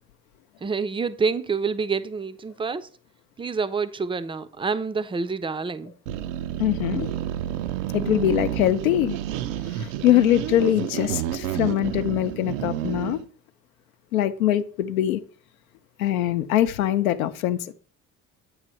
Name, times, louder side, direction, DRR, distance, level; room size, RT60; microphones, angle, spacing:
voice 1, 0.6-2.9 3.4-5.9, right 5 dB, 15° right, 0.5 m, -27 dB
sound 1, 6.1-13.2, right 11 dB, 70° right, 0.5 m, -30 dB
voice 2, 6.6-7.1 7.9-9.2 9.7-13.2 14.1-15.2 16.0-17.7, left 12 dB, 75° left, 0.6 m, -22 dB
8.7 x 3.2 x 6.1 m
figure-of-eight pair, 50°, 41 cm